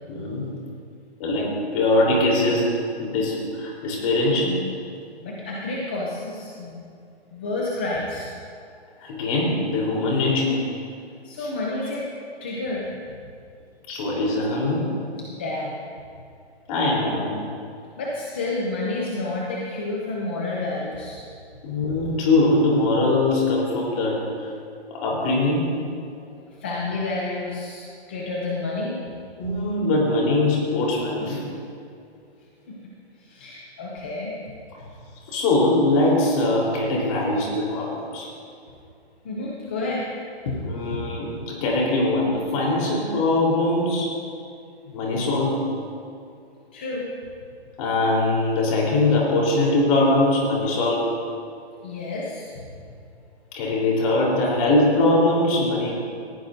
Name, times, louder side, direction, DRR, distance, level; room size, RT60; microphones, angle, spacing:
voice 1, 0.1-0.5 1.2-2.7 3.0-4.6 9.0-10.6 11.4-11.5 11.9-12.0 13.9-14.9 16.7-17.4 21.6-24.5 25.0-25.8 29.4-31.5 35.3-38.3 40.6-44.1 44.9-45.9 47.8-51.1 53.5-55.9, left 2 dB, 30° left, -3 dB, 3.6 m, -22 dB
voice 2, 5.2-6.8 7.3-8.3 11.2-12.1 12.4-12.9 15.2-15.8 18.0-21.2 26.6-27.8 28.1-29.0 32.7-32.8 33.2-34.3 39.2-40.1 40.5-40.6 40.9-41.0 46.7-47.0 51.8-52.6, left 2 dB, 10° left, -4 dB, 0.4 m, -29 dB
19.5 x 15.0 x 2.6 m, 2.4 s
hypercardioid pair, 160°, 33 cm